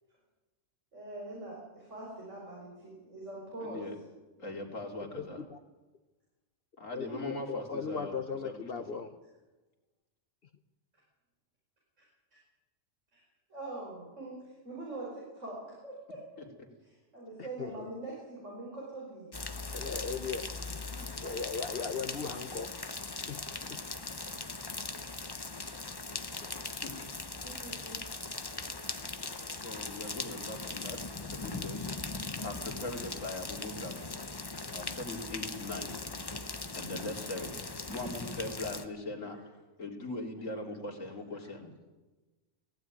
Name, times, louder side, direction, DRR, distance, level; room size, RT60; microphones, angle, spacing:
voice 1, 0.9-3.8 7.1-7.2 13.1-13.2 13.5-14.4 14.6-16.2 16.8-19.3 21.0-21.2 27.4-28.0 28.4-28.9 30.7-30.9 36.2-36.4 41.4-41.5, right 2 dB, 65° right, -4 dB, 5.4 m, -44 dB
voice 2, 3.6-4.0 4.4-5.4 6.8-9.0 16.4-16.5 26.8-26.9 29.2-31.9 32.4-34.0 34.7-35.9 36.8-37.5 37.9-39.5 39.8-41.8, left 2 dB, 80° left, 1 dB, 3.4 m, -40 dB
voice 3, 5.1-5.6 6.9-9.1 17.6-17.9 19.7-20.5 21.2-22.7 23.3-23.8, left 5 dB, 50° left, 10 dB, 1.0 m, -38 dB
sound 1, 19.3-38.9, left 3 dB, 20° left, 0.8 m, -40 dB
18.0 x 16.0 x 9.2 m, 1.2 s
omnidirectional pair, 1.3 m